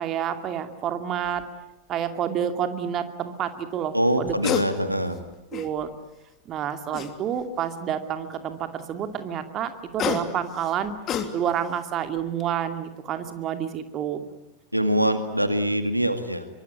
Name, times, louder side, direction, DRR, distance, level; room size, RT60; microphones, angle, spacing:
voice 1, 0.0-1.4 1.9-4.3 5.5-5.9 6.5-10.9 11.3-14.2, right 9 dB, 30° right, 8 dB, 2.6 m, -29 dB
sound 1, 1.2-1.4 4.2-4.7 5.1-5.9 6.9-7.6 9.7-11.7 12.2-12.4, left 8 dB, 30° left, 2.9 m, -30 dB
voice 2, 3.9-5.2 14.7-16.5, right 1 dB, 90° right, 9 dB, 2.1 m, -24 dB
25.0 x 23.5 x 9.8 m, 0.96 s
figure-of-eight pair, 90°, 0 cm